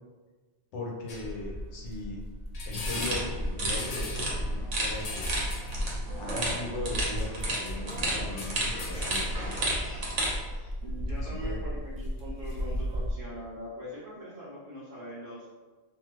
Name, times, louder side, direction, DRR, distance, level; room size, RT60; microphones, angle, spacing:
voice 1, 0.7-2.2 2.7-5.3 6.2-9.7 11.1-11.6, left 2 dB, 75° left, -1 dB, 1.0 m, -39 dB
sound 1, 1.1-13.2, equal, 55° left, 0.4 m, -35 dB
sound 2, 2.9-10.4, right 1 dB, 85° right, 1.1 m, -33 dB
sound 3, 7.8-10.7, left 1 dB, 40° left, 0.9 m, -44 dB
voice 2, 10.8-15.5, equal, 50° right, -9 dB, 0.8 m, -42 dB
2.6 x 2.3 x 3.0 m, 1.3 s
omnidirectional pair, 1.2 m